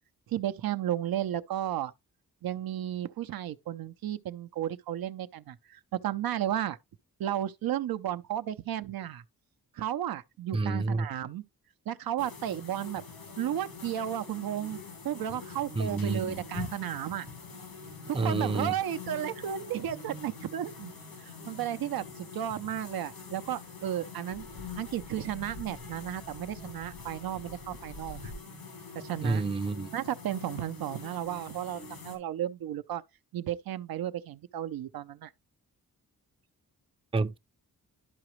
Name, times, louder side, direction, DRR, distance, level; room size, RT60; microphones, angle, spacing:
voice 1, 0.3-1.9 2.4-6.8 7.2-9.2 9.7-11.4 11.9-13.0 13.4-14.8 15.0-17.3 18.1-24.4 24.8-28.3 28.9-29.4 29.9-33.0 33.3-35.3, right 11 dB, 80° right, 0.6 m, -33 dB
voice 2, 10.5-11.1 15.8-16.4 18.1-18.7 29.2-29.9 37.1-37.4, right 3 dB, 15° right, 0.5 m, -29 dB
sound 1, 12.2-32.2, left 5 dB, 90° left, 3.4 m, -44 dB
11.5 x 4.9 x 3.1 m
cardioid pair, 80°, 35 cm